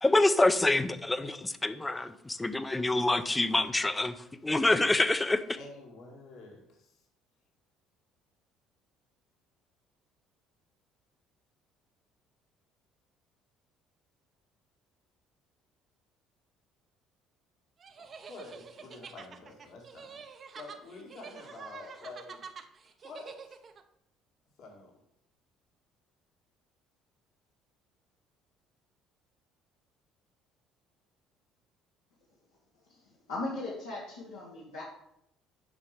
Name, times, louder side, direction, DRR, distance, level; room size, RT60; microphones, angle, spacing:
voice 1, 0.0-4.2 4.4-5.4, left 2 dB, 15° left, 12 dB, 0.6 m, -26 dB
voice 2, 5.6-7.0 18.0-20.3 20.5-22.4 23.0-23.6 24.6-24.9, left 3 dB, 60° left, 0 dB, 1.9 m, -48 dB
sound 1, 17.8-23.8, right 6 dB, 40° right, 0.7 m, -47 dB
voice 3, 32.9-34.8, left 2 dB, 85° left, -7 dB, 1.8 m, -38 dB
7.3 x 5.1 x 5.0 m, 0.77 s
hypercardioid pair, 55°, 0 cm